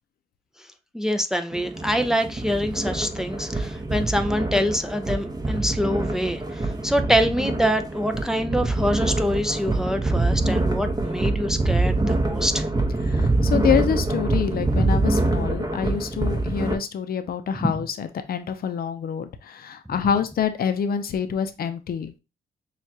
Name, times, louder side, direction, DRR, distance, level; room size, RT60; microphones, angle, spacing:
voice 1, 0.9-12.6, equal, 5° right, 0.5 m, -25 dB
sound 1, 1.5-16.8, right 2 dB, 20° right, 1.1 m, -25 dB
voice 2, 13.1-22.2, left 7 dB, 60° left, 0.6 m, -26 dB
6.4 x 2.4 x 2.8 m
cardioid pair, 80°, 17 cm